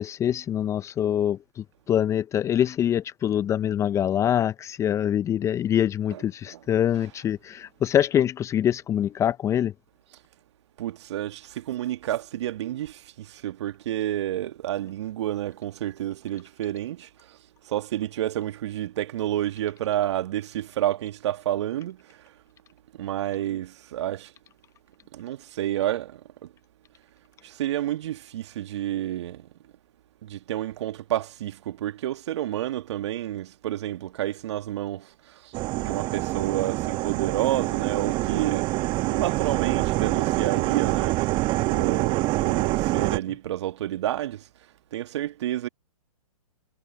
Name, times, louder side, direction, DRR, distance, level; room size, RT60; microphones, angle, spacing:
voice 1, 0.0-1.4 1.9-9.7, left 10 dB, 15° left, 0.9 m, -24 dB
voice 2, 10.8-17.4 17.7-22.0 23.0-24.3 25.1-26.2 27.4-29.5 30.2-38.7 39.1-41.2 41.7-44.4 44.9-45.7, right 12 dB, 50° right, 1.8 m, -30 dB
sound 1, 35.5-43.2, right 20 dB, 25° right, 1.4 m, -26 dB
figure-of-eight pair, 125°, 19 cm